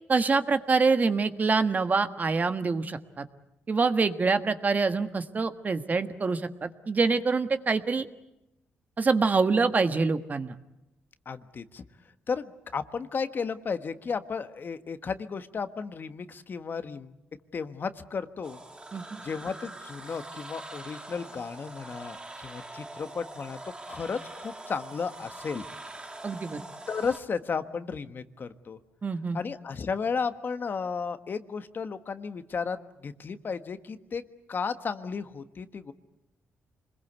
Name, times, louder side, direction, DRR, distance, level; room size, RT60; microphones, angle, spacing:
voice 1, 0.1-3.3 3.7-8.1 9.0-10.5 18.9-19.2 26.2-26.6 29.0-29.4, right 4 dB, 40° right, 9 dB, 1.4 m, -25 dB
voice 2, 11.2-11.8 12.3-17.1 17.5-18.6 19.2-23.6 23.9-25.7 26.9-28.8 29.3-34.2 34.5-35.9, left 5 dB, 50° left, 10 dB, 1.4 m, -34 dB
sound 1, 18.4-27.2, right 2 dB, 20° right, 2.1 m, -43 dB
26.0 x 21.5 x 8.1 m, 0.90 s
cardioid pair, 85°, 4 cm